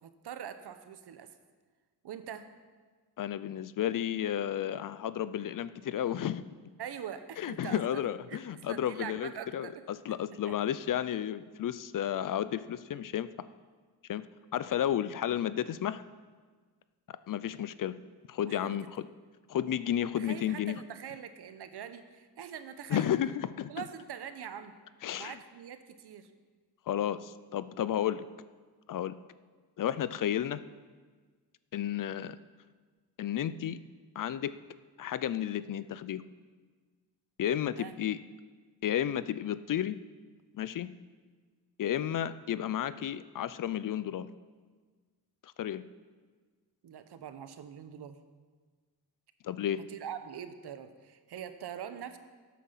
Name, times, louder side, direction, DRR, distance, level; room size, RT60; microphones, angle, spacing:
voice 1, 0.0-1.3 2.0-2.5 6.8-8.0 8.3-9.8 10.5-10.6 18.4-18.8 20.2-23.1 23.7-24.8 25.2-26.3 37.8-38.0 46.8-48.2 49.9-52.2, right 9 dB, 85° right, 10 dB, 0.9 m, -43 dB
voice 2, 3.2-6.4 7.4-13.3 14.1-14.3 14.5-16.0 17.3-18.0 18.3-19.1 19.5-20.8 22.9-23.7 25.0-25.4 26.9-28.2 28.9-29.2 29.8-30.6 31.7-32.4 33.2-33.8 34.2-34.6 35.0-36.2 37.4-38.2 38.8-40.0 40.5-40.9 41.8-44.3 45.4-45.8 49.4-49.8, left 10 dB, 55° left, 15 dB, 0.5 m, -32 dB
13.0 x 8.4 x 5.6 m, 1.5 s
wide cardioid pair, 160°, 39 cm